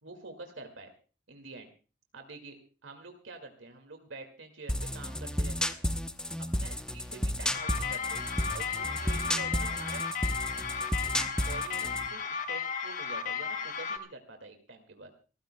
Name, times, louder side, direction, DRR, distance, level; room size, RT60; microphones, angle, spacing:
voice 1, 0.0-0.9 1.3-1.7 2.1-5.8 6.5-10.0 11.1-15.1, right 3 dB, 75° right, 5 dB, 2.2 m, -47 dB
sound 1, 4.7-12.1, left 1 dB, 5° left, 0.8 m, -32 dB
sound 2, 7.5-14.0, left 6 dB, 40° left, 1.5 m, -34 dB
28.0 x 14.5 x 2.3 m, 0.36 s
head